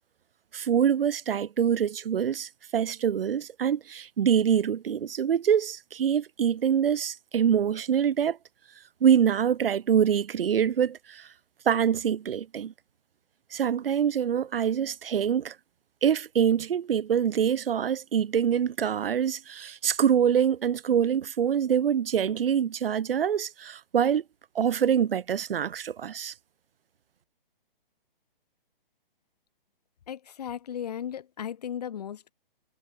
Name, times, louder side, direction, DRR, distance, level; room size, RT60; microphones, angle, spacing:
voice 1, 0.5-8.4 9.0-11.3 11.7-12.7 13.5-15.5 16.0-24.2 24.5-26.3, right 8 dB, 75° right, 0.8 m, -25 dB
voice 2, 30.1-32.3, left 9 dB, 45° left, 1.1 m, -36 dB
hypercardioid pair, 170°, 29 cm